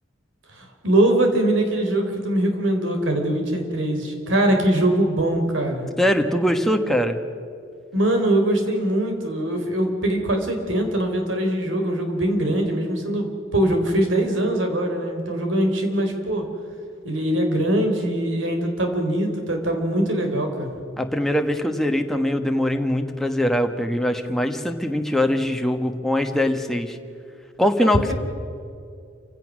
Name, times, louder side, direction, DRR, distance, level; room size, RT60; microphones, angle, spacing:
voice 1, 0.5-5.9 7.9-16.5 17.0-20.7 27.8-28.1, right 1 dB, 75° right, 4 dB, 3.6 m, -22 dB
voice 2, 6.0-7.2 21.0-27.0 27.6-28.1, left 1 dB, ahead, 4 dB, 1.3 m, -22 dB
28.5 x 16.0 x 6.3 m, 2.4 s
head